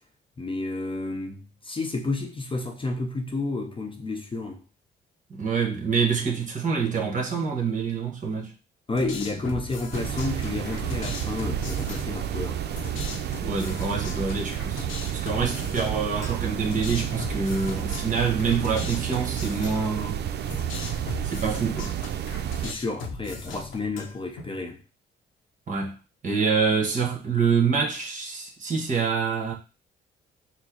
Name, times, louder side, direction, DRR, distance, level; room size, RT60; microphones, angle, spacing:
voice 1, 0.4-4.6 8.9-12.6 22.6-24.8, left 2 dB, 25° left, 0.6 m, -31 dB
voice 2, 5.3-8.5 13.4-14.9 15.1-20.2 21.2-21.9 25.7-25.9 26.2-29.5, right 5 dB, 40° right, 1.2 m, -26 dB
sound 1, 8.9-24.4, left 4 dB, 85° left, 0.8 m, -39 dB
sound 2, 9.9-22.7, right 10 dB, 55° right, 0.4 m, -31 dB
4.4 x 2.0 x 4.3 m
cardioid pair, 90°, 20 cm